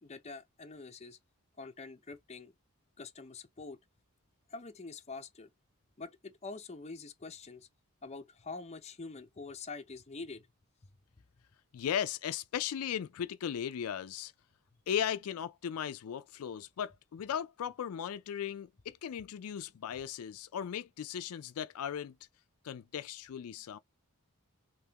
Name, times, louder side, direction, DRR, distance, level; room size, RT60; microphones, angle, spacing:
voice 1, 0.0-1.2 1.6-2.5 3.0-3.8 4.5-5.5 6.0-7.7 8.0-10.5, left 4 dB, 30° left, 0.5 m, -45 dB
voice 2, 11.7-14.3 14.9-22.1 22.6-23.8, left 9 dB, 80° left, 0.4 m, -37 dB
3.5 x 2.7 x 2.8 m
head